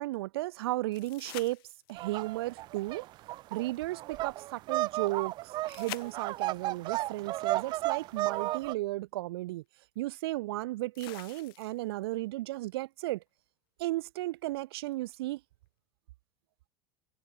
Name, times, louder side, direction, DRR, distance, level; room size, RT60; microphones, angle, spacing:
voice 1, 0.0-1.6 1.9-3.1 3.5-9.6 10.0-13.2 13.8-15.4, right 18 dB, 90° right, 2.7 m, -34 dB
sound 1, 0.9-2.2 5.7-6.7 8.6-8.7 10.9-12.0 14.9-15.0, left 21 dB, 70° left, 7.9 m, -46 dB
sound 2, 2.0-8.7, right 17 dB, 35° right, 1.6 m, -33 dB
supercardioid pair, 170°, 12 cm